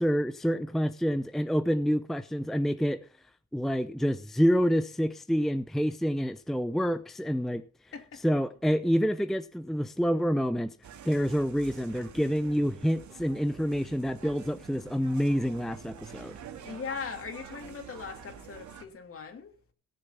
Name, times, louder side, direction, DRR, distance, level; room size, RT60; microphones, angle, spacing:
voice 1, 0.0-3.0 3.5-7.6 8.2-10.7 11.0-16.4, equal, ahead, 0.6 m, -27 dB
voice 2, 7.9-8.4 16.6-19.5, left 5 dB, 45° left, 2.7 m, -40 dB
sound 1, 10.8-18.8, right 7 dB, 70° right, 2.1 m, -47 dB
17.5 x 6.8 x 5.7 m
cardioid pair, 90°, 30 cm